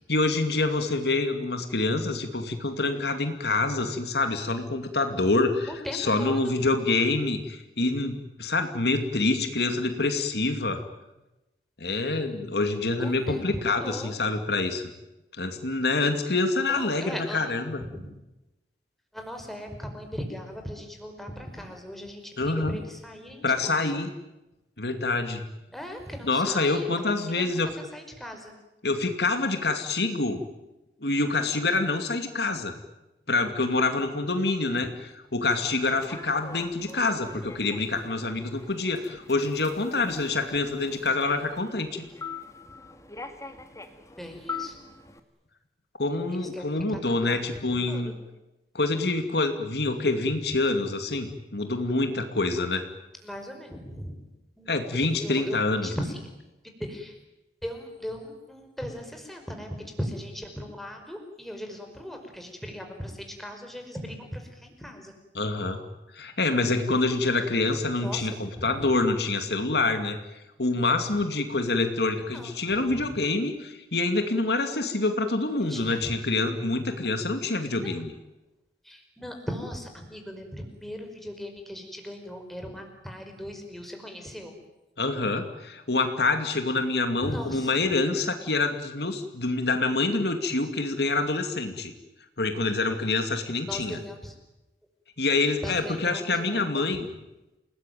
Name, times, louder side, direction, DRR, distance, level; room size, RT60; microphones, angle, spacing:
voice 1, 0.1-10.9 11.8-14.9 15.4-17.8 22.4-22.8 23.4-24.1 24.8-25.4 26.2-27.7 28.8-30.4 31.0-32.7 33.3-42.0 46.0-48.1 48.7-52.9 54.7-56.0 65.3-65.8 66.1-70.2 70.6-78.1 85.0-91.9 92.4-94.0 95.2-97.1, left 3 dB, 65° left, 7 dB, 2.5 m, -26 dB
voice 2, 5.7-6.4 13.0-14.3 16.7-17.4 17.8-18.0 19.1-23.7 25.7-27.6 27.9-28.5 34.7-34.9 44.2-44.8 46.4-47.4 47.9-48.0 53.2-54.1 54.6-56.1 56.9-57.1 57.6-65.1 68.0-68.3 68.6-68.9 72.3-72.5 75.7-76.1 77.8-78.0 78.8-84.5 87.1-87.7 93.7-94.3 95.6-96.8, equal, ahead, 3 dB, 5.1 m, -38 dB
Human voice / Subway metro underground, 35.8-45.2, left 4 dB, 20° left, 2.2 m, -43 dB
29.5 x 19.5 x 9.2 m, 0.99 s
head